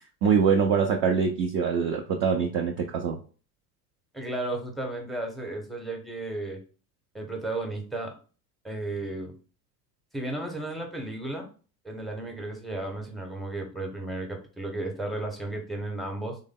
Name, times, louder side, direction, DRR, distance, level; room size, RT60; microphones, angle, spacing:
voice 1, 0.2-3.2, right 6 dB, 35° right, 2 dB, 0.4 m, -24 dB
voice 2, 4.1-6.6 7.1-8.1 8.6-9.3 10.1-11.5 11.8-16.4, right 2 dB, ahead, 2 dB, 0.7 m, -34 dB
3.4 x 2.2 x 3.5 m, 0.37 s
figure-of-eight pair, 70°, 50 cm